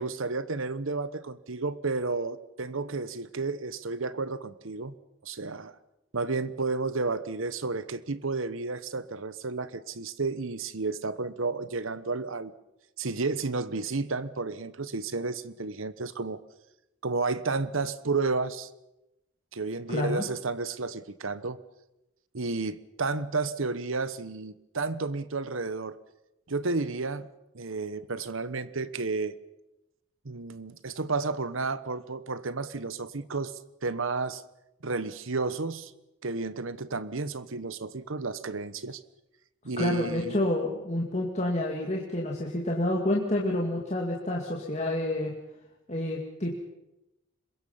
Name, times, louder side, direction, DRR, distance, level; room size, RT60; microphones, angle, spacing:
voice 1, 0.0-4.9 5.2-5.7 6.1-12.5 13.0-16.4 17.0-18.7 19.5-21.6 22.3-26.0 26.5-27.3 27.5-29.3 30.2-33.5 33.8-34.4 34.8-35.9 36.2-39.0 39.6-40.4, right 3 dB, 70° right, 15 dB, 1.1 m, -32 dB
voice 2, 19.9-20.2 39.8-45.3 45.9-46.5, left 1 dB, 30° left, -1 dB, 2.2 m, -28 dB
26.5 x 22.5 x 5.6 m, 0.92 s
head